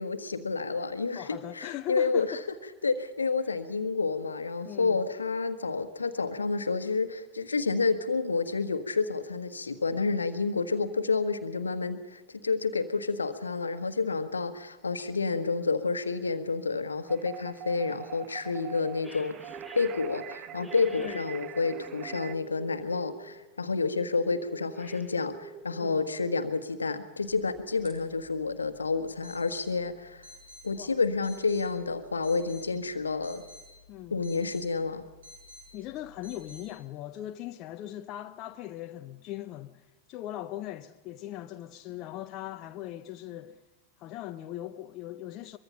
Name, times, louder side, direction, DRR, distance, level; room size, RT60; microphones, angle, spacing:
voice 1, 0.0-2.4 2.8-30.3 30.6-33.4 34.1-35.0, left 4 dB, 75° left, 1.4 m, -29 dB
voice 2, 1.1-2.4 4.6-5.0 21.0-21.3 25.8-26.1 30.8-30.9 33.9-34.2 35.7-43.6 44.0-45.6, left 13 dB, 40° left, 0.8 m, -39 dB
sound 1, 17.1-22.3, right 11 dB, 35° right, 0.8 m, -44 dB
sound 2, 19.0-20.2 20.6-23.3 23.9-25.9 26.2-26.4, right 3 dB, 5° right, 4.2 m, -46 dB
sound 3, 27.1-36.6, left 2 dB, 60° right, 8.0 m, -53 dB
23.0 x 23.0 x 5.7 m
figure-of-eight pair, 90°, 0 cm